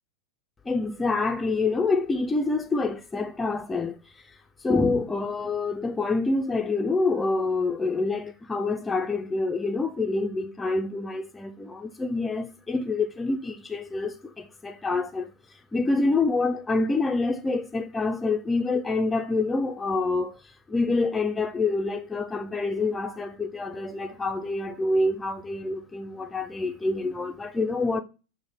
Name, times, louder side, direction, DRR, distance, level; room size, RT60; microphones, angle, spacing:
voice 1, 0.7-4.0 4.6-15.3 15.7-20.4 20.7-28.0, left 3 dB, 10° left, 0.4 m, -27 dB
6.0 x 2.1 x 3.4 m
figure-of-eight pair, 90°, 0 cm